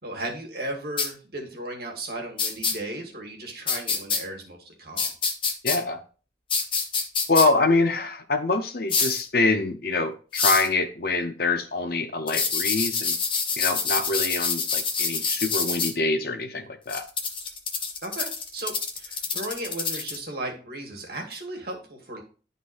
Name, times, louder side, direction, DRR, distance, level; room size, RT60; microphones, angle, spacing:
voice 1, 0.0-5.1 18.0-22.2, right 1 dB, 60° right, 1 dB, 1.9 m, -35 dB
sound 1, 1.0-1.1 2.4-2.7 3.7-4.2 5.0-5.8 6.5-7.5 8.9-9.2 10.3-10.7 12.3-15.9 16.9-20.2, left 5 dB, 30° left, 1.0 m, -26 dB
voice 2, 5.6-6.0 7.3-13.2 13.6-17.0, left 3 dB, 60° left, 6 dB, 0.9 m, -25 dB
11.5 x 4.0 x 2.6 m, 0.37 s
head